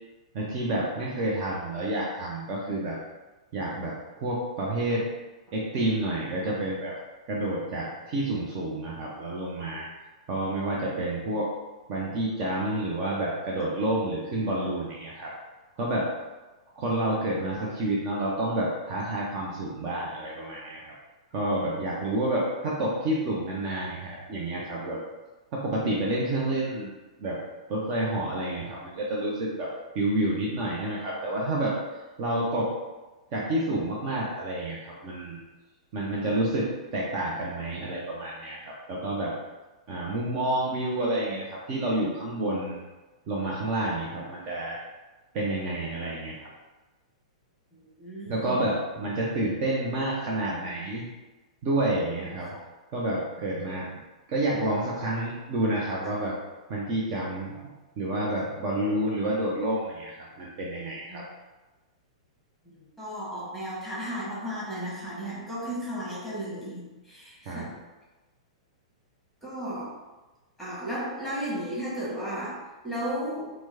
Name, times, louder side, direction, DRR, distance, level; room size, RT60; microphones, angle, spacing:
voice 1, 0.3-3.0 3.5-5.1 5.5-6.9 7.3-9.9 10.3-11.5 11.9-15.3 15.8-16.1 16.8-20.9 21.3-25.0 25.5-26.9 27.2-27.4 27.7-31.8 32.2-32.7 33.3-35.4 35.9-39.4 39.9-42.8 43.3-44.8 45.3-46.5 48.3-51.1 51.6-52.5 52.9-53.9 54.3-56.4 56.7-57.6 58.0-61.2 67.4-67.7, right 1 dB, 40° right, -4 dB, 0.6 m, -29 dB
voice 2, 47.7-48.7 52.2-52.6 56.0-56.1 61.1-61.2 62.6-67.8 69.4-69.9 70.6-73.5, equal, 5° right, -8 dB, 1.4 m, -35 dB
4.4 x 2.1 x 2.8 m, 1.1 s
figure-of-eight pair, 105°, 3 cm